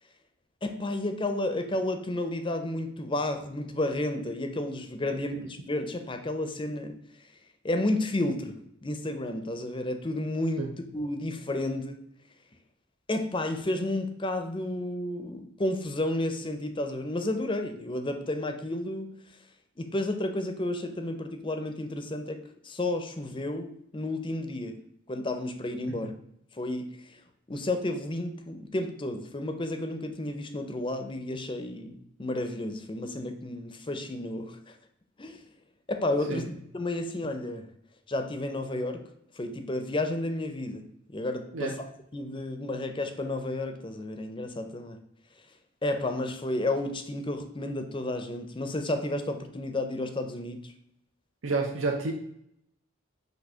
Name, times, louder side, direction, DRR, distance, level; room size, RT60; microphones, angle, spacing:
voice 1, 0.6-7.0 7.6-10.7 10.9-12.1 13.1-19.2 19.8-24.8 25.1-26.1 26.5-27.2 27.5-34.8 35.2-35.4 35.9-37.7 38.1-39.1 39.4-41.9 42.1-45.0 45.8-50.7, left 1 dB, 25° left, 7 dB, 0.6 m, -32 dB
voice 2, 51.4-52.1, right 3 dB, 70° right, 2 dB, 0.7 m, -29 dB
6.2 x 2.8 x 5.5 m, 0.73 s
head